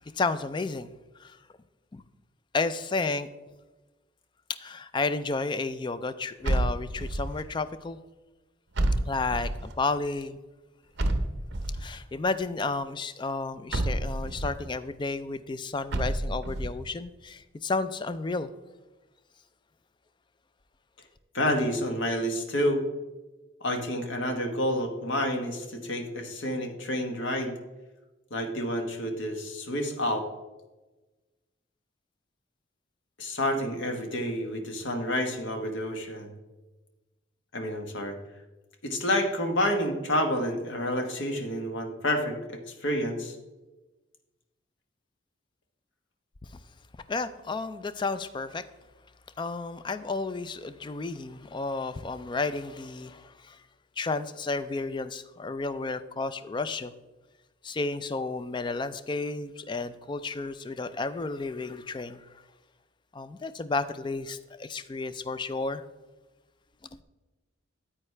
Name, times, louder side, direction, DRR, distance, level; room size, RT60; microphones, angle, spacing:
voice 1, 0.1-0.9 1.2-1.4 1.9-2.0 2.5-3.3 4.5-8.0 9.1-10.4 11.8-18.5 47.1-48.6 49.4-53.6 54.0-56.9 57.6-62.2 63.1-65.8, left 3 dB, 25° left, 13 dB, 0.3 m, -32 dB
sound 1, 6.4-7.4 8.7-9.7 11.0-11.9 13.7-14.6 15.9-16.8, right 1 dB, 55° right, 0.8 m, -29 dB
voice 2, 21.3-22.8 23.6-27.6 28.3-30.3 33.2-36.3 37.5-38.2 38.8-43.4, left 1 dB, 65° left, 5 dB, 1.2 m, -29 dB
9.3 x 8.6 x 3.3 m, 1.2 s
head